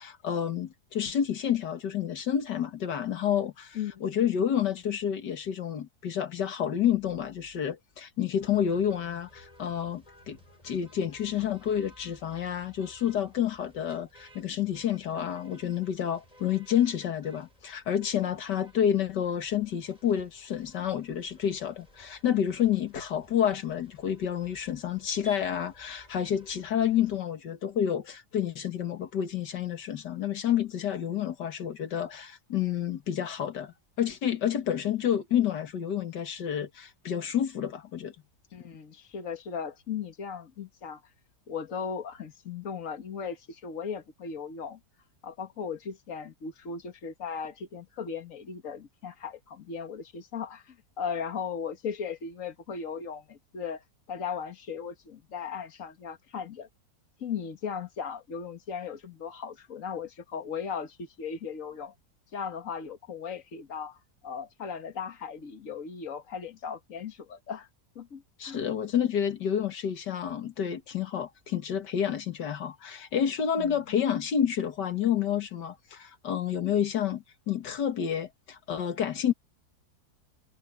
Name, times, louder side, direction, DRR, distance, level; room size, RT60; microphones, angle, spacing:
voice 1, 0.0-10.4 10.6-38.1 68.4-79.3, left 9 dB, 90° left, 2.2 m, -29 dB
sound 1, 8.4-27.2, equal, 20° left, 8.1 m, -56 dB
voice 2, 38.5-41.0 41.5-44.8 45.2-56.7 57.2-61.9 62.3-67.7 68.0-68.6 73.6-73.8, left 6 dB, 50° left, 2.0 m, -37 dB
omnidirectional pair, 1.8 m